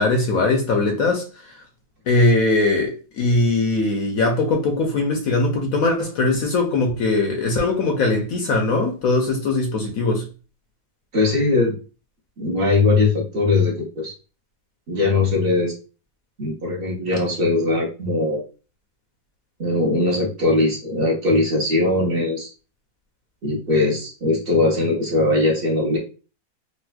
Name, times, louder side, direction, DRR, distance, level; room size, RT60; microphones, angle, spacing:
voice 1, 0.0-1.6 2.1-10.2, left 2 dB, 65° left, 0.9 m, -20 dB
voice 2, 11.1-11.7 12.4-14.1 14.9-15.7 16.4-18.4 19.6-22.5 23.4-26.0, left 2 dB, 40° right, 0.9 m, -20 dB
4.1 x 2.3 x 2.2 m
omnidirectional pair, 1.8 m